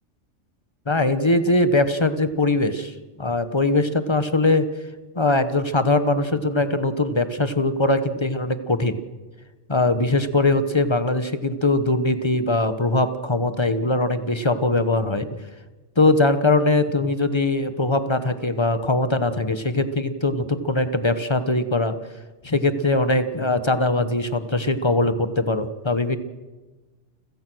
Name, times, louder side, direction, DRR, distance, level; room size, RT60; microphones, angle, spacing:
voice 1, 0.9-4.7 5.1-9.0 9.7-15.4 16.0-21.9 22.4-26.2, left 2 dB, 25° left, 11 dB, 1.1 m, -21 dB
29.5 x 16.5 x 6.3 m, 1.2 s
omnidirectional pair, 1.3 m